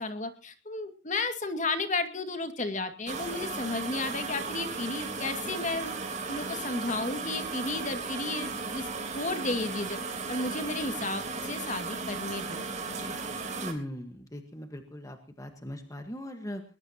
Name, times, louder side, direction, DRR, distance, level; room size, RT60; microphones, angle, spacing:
voice 1, 0.0-5.9 6.3-8.9 9.1-10.0 10.3-13.1, left 2 dB, 40° left, 7 dB, 2.2 m, -33 dB
sound 1, 3.1-13.7, right 4 dB, 40° right, 3.6 m, -36 dB
voice 2, 13.6-16.6, left 1 dB, 15° left, 5 dB, 1.5 m, -39 dB
21.0 x 20.0 x 2.9 m, 0.37 s
head